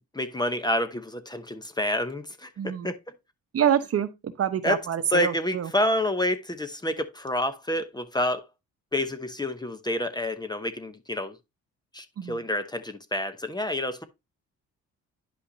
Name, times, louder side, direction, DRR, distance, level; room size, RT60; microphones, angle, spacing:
voice 1, 0.1-3.0 4.6-4.8 5.1-8.4 8.9-11.3 11.9-14.0, left 1 dB, 15° left, 0.8 m, -28 dB
voice 2, 2.6-2.9 3.5-5.7 12.2-12.4, right 9 dB, 50° right, 0.9 m, -26 dB
9.9 x 5.5 x 2.7 m
cardioid pair, 90°, 30 cm